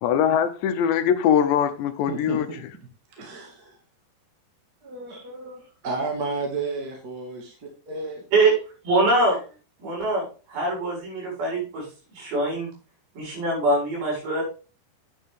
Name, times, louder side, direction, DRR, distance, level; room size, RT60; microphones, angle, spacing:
voice 1, 0.0-2.5, left 8 dB, 80° left, 3.1 m, -22 dB
voice 2, 2.1-2.6 3.2-3.7 4.8-8.2, right 3 dB, 35° right, 1.6 m, -32 dB
voice 3, 8.8-9.4 9.8-12.7 13.2-14.4, right 2 dB, 55° right, 7.4 m, -23 dB
10.0 x 8.3 x 3.6 m
omnidirectional pair, 5.1 m